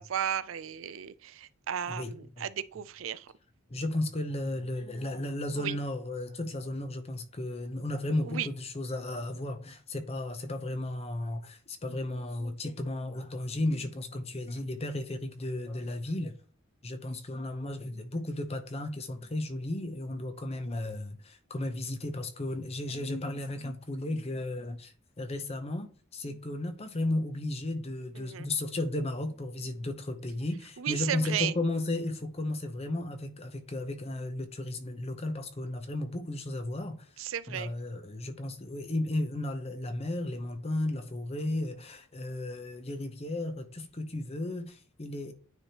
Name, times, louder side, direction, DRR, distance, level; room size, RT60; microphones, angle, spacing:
voice 1, 0.0-3.3 5.6-5.8 8.2-8.5 28.2-28.5 30.8-31.5 37.2-37.7, right 9 dB, 90° right, 0.4 m, -34 dB
voice 2, 1.9-2.5 3.7-16.3 16.8-24.9 25.2-45.3, left 1 dB, 30° left, 0.8 m, -34 dB
9.4 x 3.4 x 2.9 m
head